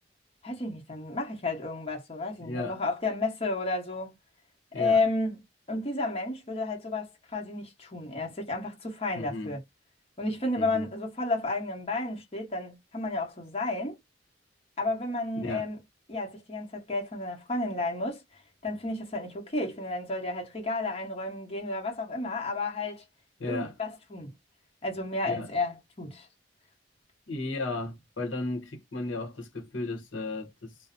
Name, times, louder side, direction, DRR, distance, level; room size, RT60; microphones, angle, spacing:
voice 1, 0.4-4.1 4.7-5.4 5.7-9.6 10.2-14.0 14.8-15.8 16.1-18.2 18.6-23.0 23.5-24.3 24.8-26.3, left 2 dB, 30° left, 0.9 m, -32 dB
voice 2, 2.4-2.8 4.7-5.0 9.1-9.6 10.5-10.9 15.3-15.7 23.4-23.7 25.2-25.5 27.3-30.8, left 2 dB, 85° left, 0.8 m, -35 dB
2.6 x 2.0 x 2.5 m
head